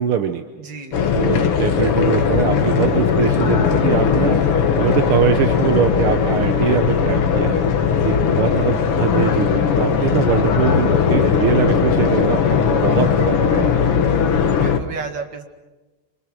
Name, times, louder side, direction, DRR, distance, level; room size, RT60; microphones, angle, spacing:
voice 1, 0.0-0.4 1.1-4.4 4.8-7.6 8.0-13.7, right 8 dB, 80° right, 7 dB, 1.9 m, -22 dB
voice 2, 0.6-1.3 7.9-8.9 14.2-15.4, right 4 dB, 55° right, 4 dB, 2.8 m, -35 dB
sound 1, 0.9-14.8, left 7 dB, 85° left, 2.4 m, -18 dB
28.0 x 27.0 x 6.2 m, 1.2 s
omnidirectional pair, 2.4 m